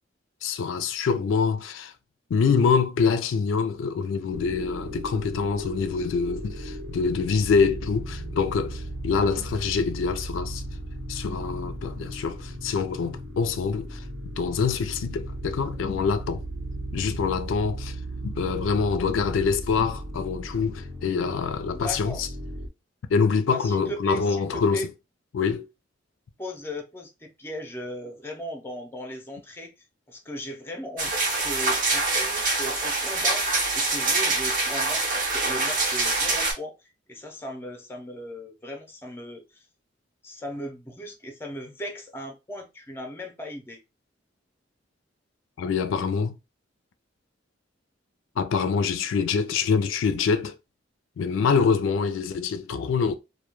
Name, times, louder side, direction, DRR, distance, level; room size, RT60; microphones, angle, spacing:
voice 1, 0.4-1.9 2.3-10.6 11.1-14.0 14.4-16.4 16.9-18.0 18.2-22.3 23.1-24.9 25.3-25.7 45.6-46.4 48.4-50.6 51.2-53.1, left 5 dB, 90° left, 0.3 m, -25 dB
sound 1, 4.3-22.7, right 1 dB, 90° right, 1.0 m, -36 dB
voice 2, 21.7-22.2 23.5-24.9 26.4-29.7 30.1-39.6 40.2-43.8, equal, 10° left, 0.5 m, -37 dB
sound 2, 31.0-36.5, right 3 dB, 45° right, 0.7 m, -25 dB
2.2 x 2.1 x 2.9 m
head